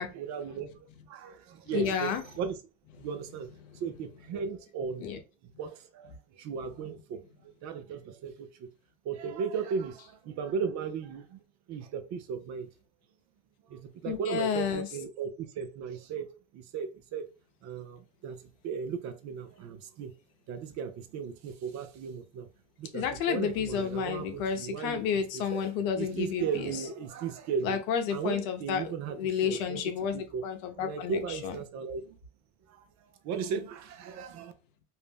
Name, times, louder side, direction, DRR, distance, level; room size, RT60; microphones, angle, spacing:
voice 1, 0.1-2.6 3.0-3.5 3.7-5.1 5.6-8.7 9.0-11.4 11.7-12.7 13.7-16.3 16.5-17.3 17.6-20.1 20.5-22.5 22.8-25.6 25.9-27.8 28.1-29.8 30.1-30.4 30.7-32.2 32.7-34.5, right 6 dB, 45° right, 0.5 m, -36 dB
voice 2, 1.7-2.2 3.7-3.8 5.0-5.2 14.1-14.9 22.9-26.7 27.6-31.5, left 7 dB, 70° left, 0.8 m, -31 dB
2.6 x 2.0 x 3.3 m
supercardioid pair, 105°, 43 cm